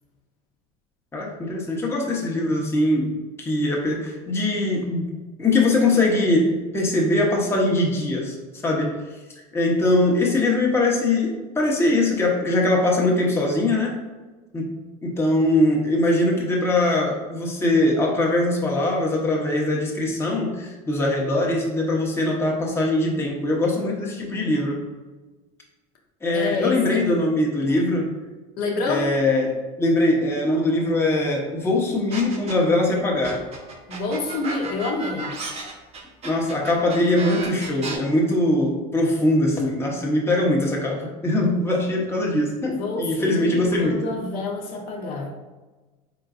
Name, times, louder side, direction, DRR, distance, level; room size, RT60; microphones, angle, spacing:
voice 1, 1.1-3.1 3.4-5.1 5.4-8.4 8.6-9.0 9.5-13.9 14.5-14.7 15.0-24.8 26.2-28.1 28.9-29.5 29.8-33.4 36.2-44.0, left 2 dB, 15° left, -2 dB, 0.8 m, -22 dB
voice 2, 26.3-27.0 28.6-29.1 33.9-35.4 42.8-45.3, left 3 dB, 55° left, 0 dB, 0.8 m, -28 dB
sound 1, 32.1-32.8 33.2-38.0, right 3 dB, 35° right, 0.8 m, -33 dB
3.8 x 3.7 x 2.4 m, 1.2 s
supercardioid pair, 100°, 19 cm